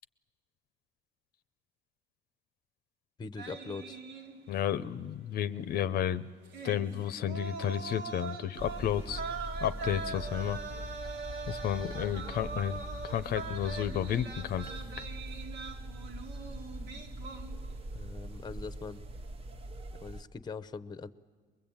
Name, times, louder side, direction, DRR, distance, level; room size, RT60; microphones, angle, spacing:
voice 1, 3.2-4.0 17.9-19.0 20.0-21.1, left 4 dB, 25° left, 14 dB, 0.7 m, -42 dB
sound 1, 3.4-4.7 5.0-5.1 6.4-17.9 18.2-18.5, right 4 dB, 80° right, 1.9 m, -42 dB
voice 2, 4.5-6.2 6.6-9.2 9.6-10.6 11.5-12.8 13.0-14.7, left 10 dB, 65° left, 13 dB, 0.7 m, -32 dB
sound 2, 8.6-20.2, right 1 dB, 35° right, 1.0 m, -42 dB
22.0 x 22.0 x 8.8 m, 1.5 s
cardioid pair, 110°, 17 cm